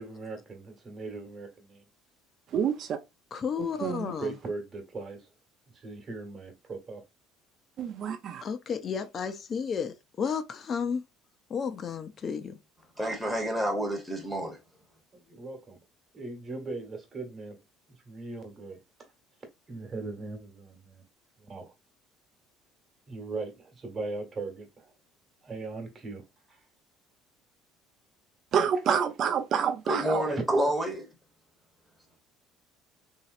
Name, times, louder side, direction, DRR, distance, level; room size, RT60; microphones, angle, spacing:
voice 1, 0.0-1.8 3.8-5.3 5.7-7.0 15.1-15.8 16.1-17.6 18.0-19.1 19.7-21.0 21.4-21.7 23.1-24.9 25.4-26.6 30.2-30.4, right 3 dB, 35° right, 1.2 m, -39 dB
voice 2, 2.5-3.0 3.8-4.1 7.8-8.4 28.5-30.3, right 7 dB, 50° right, 0.5 m, -28 dB
voice 3, 3.3-4.3 8.4-11.0 11.5-12.6, left 6 dB, 40° left, 0.5 m, -32 dB
voice 4, 13.0-14.6 29.9-31.0, right 1 dB, 5° right, 0.9 m, -28 dB
3.0 x 2.8 x 2.5 m
supercardioid pair, 100°, 0 cm